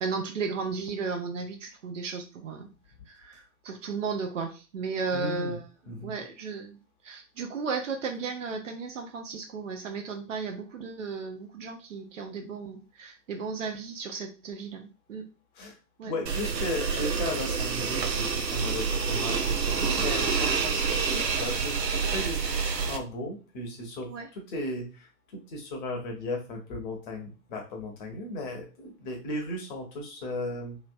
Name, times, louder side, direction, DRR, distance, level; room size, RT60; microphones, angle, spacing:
voice 1, 0.0-2.7 3.1-6.8 7.0-15.2 16.0-16.1 24.1-24.3, right 4 dB, 50° right, 5 dB, 0.8 m, -35 dB
voice 2, 5.1-5.6 5.9-6.1 15.5-15.8 16.0-30.8, left 1 dB, 30° left, 2 dB, 0.9 m, -36 dB
sound 1, 16.3-23.0, right 5 dB, 85° right, 0.7 m, -28 dB
3.1 x 2.9 x 2.6 m, 0.33 s
figure-of-eight pair, 120°, 49 cm